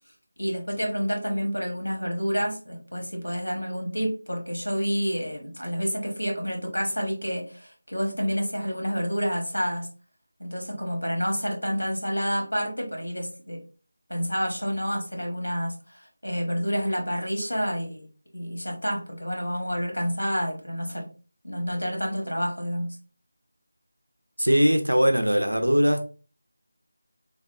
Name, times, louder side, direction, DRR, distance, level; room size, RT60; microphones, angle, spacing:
voice 1, 0.4-9.9 10.4-13.6 14.1-18.1 18.3-21.1 21.4-22.9, equal, 85° left, 1 dB, 1.1 m, -29 dB
voice 2, 24.4-26.0, equal, 90° right, 6 dB, 0.5 m, -20 dB
3.4 x 2.0 x 2.4 m, 0.37 s
figure-of-eight pair, 165°, 0 cm